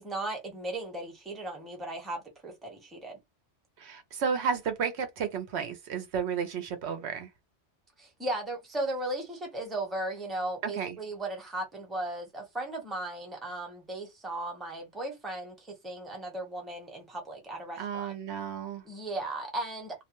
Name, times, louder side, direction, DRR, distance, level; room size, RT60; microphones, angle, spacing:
voice 1, 0.0-3.2 8.0-18.1 18.9-20.0, right 1 dB, ahead, 0.7 m, -36 dB
voice 2, 3.8-7.3 10.6-11.0 17.8-18.8, right 6 dB, 70° right, 0.9 m, -32 dB
2.4 x 2.1 x 2.9 m
omnidirectional pair, 1.2 m